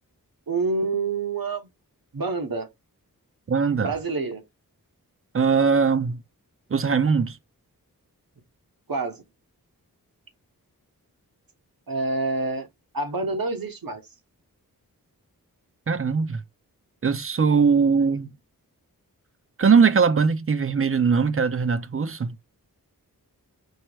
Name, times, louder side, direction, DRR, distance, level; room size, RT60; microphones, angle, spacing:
voice 1, 0.5-1.7 2.1-2.7 3.8-4.4 8.9-9.2 11.9-12.7 12.9-14.0, right 3 dB, 75° right, 1.2 m, -27 dB
voice 2, 3.5-3.9 5.3-6.2 6.7-7.4 15.9-16.4 17.0-18.3 19.6-22.4, right 5 dB, 40° right, 0.6 m, -20 dB
4.6 x 2.1 x 4.6 m
wide cardioid pair, 70°, 36 cm